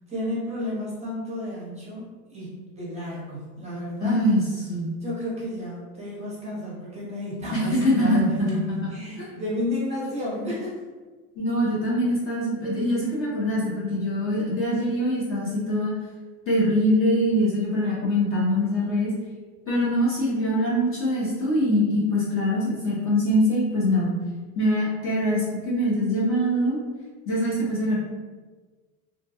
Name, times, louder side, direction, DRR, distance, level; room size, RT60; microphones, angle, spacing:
voice 1, 0.1-4.2 5.0-10.8, left 1 dB, 15° right, -7 dB, 0.7 m, -32 dB
voice 2, 4.0-4.4 4.7-4.9 7.5-8.9 9.2-9.3 11.4-15.9 16.5-19.1 19.7-24.1 24.6-26.8 27.3-28.0, equal, 30° left, -6 dB, 0.6 m, -23 dB
2.3 x 2.1 x 2.7 m, 1.4 s
supercardioid pair, 120°, 45 cm